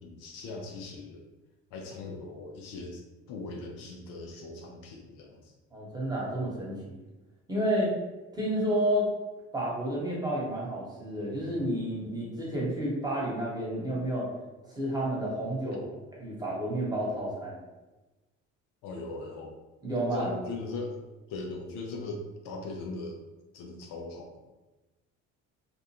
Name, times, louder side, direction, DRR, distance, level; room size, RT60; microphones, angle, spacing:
voice 1, 0.0-1.2 1.7-3.0 3.3-5.5 18.8-19.6 20.0-21.0 21.3-23.2 23.5-24.3, left 3 dB, 80° left, 1 dB, 0.6 m, -39 dB
voice 2, 5.7-7.0 7.5-7.9 8.3-9.1 9.5-14.3 14.7-15.9 16.2-17.6 19.8-20.3, right 1 dB, 10° right, -5 dB, 1.1 m, -30 dB
2.5 x 2.2 x 2.8 m, 1.1 s
supercardioid pair, 75°, 32 cm